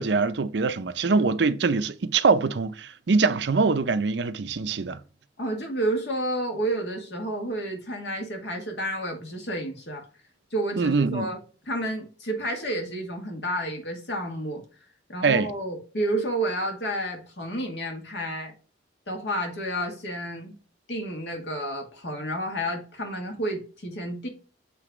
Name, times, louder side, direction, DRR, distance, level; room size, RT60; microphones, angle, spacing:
voice 1, 0.0-5.0 10.8-11.3 15.2-15.5, right 4 dB, 80° right, 0.6 m, -23 dB
voice 2, 5.4-10.0 10.5-11.4 11.7-14.6 15.1-18.5 19.1-20.5 20.9-24.3, right 1 dB, 75° left, 2.1 m, -30 dB
7.8 x 3.3 x 5.0 m
head